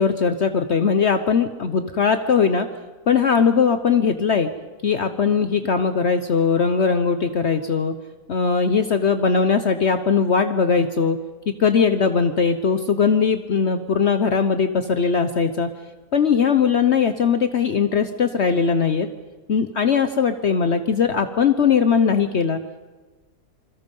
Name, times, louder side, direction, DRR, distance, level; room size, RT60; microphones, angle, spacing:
voice 1, 0.0-2.7 3.1-4.5 4.8-7.9 8.3-11.2 11.6-15.7 16.1-19.1 19.5-22.6, left 6 dB, 55° left, 9 dB, 1.1 m, -20 dB
27.0 x 22.5 x 5.4 m, 1.3 s
omnidirectional pair, 1.5 m